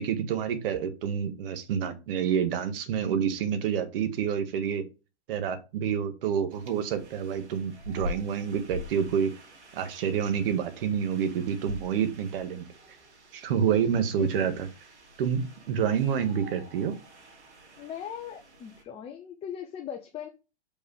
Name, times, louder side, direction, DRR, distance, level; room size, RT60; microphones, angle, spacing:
voice 1, 0.0-4.8 5.3-9.3 9.7-12.6 13.3-14.5 15.2-16.9, right 8 dB, 55° right, 1.6 m, -28 dB
sound 1, 6.5-18.8, left 2 dB, 85° right, 2.9 m, -45 dB
voice 2, 14.1-14.5 17.8-20.3, left 9 dB, 20° left, 0.6 m, -39 dB
5.5 x 4.8 x 4.8 m
hypercardioid pair, 125°, 34 cm